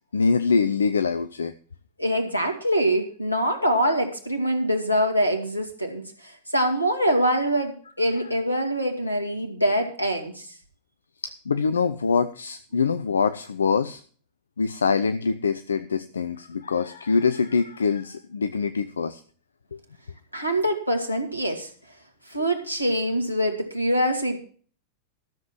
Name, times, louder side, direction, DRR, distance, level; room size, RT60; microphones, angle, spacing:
voice 1, 0.1-1.5 11.2-14.0 14.6-19.2 19.7-19.8 22.4-22.5, left 5 dB, 70° left, 11 dB, 0.6 m, -24 dB
voice 2, 2.0-10.5 20.3-21.7 22.3-24.4, equal, 85° left, 5 dB, 2.4 m, -24 dB
13.5 x 7.3 x 6.1 m, 0.43 s
figure-of-eight pair, 90°, 0 cm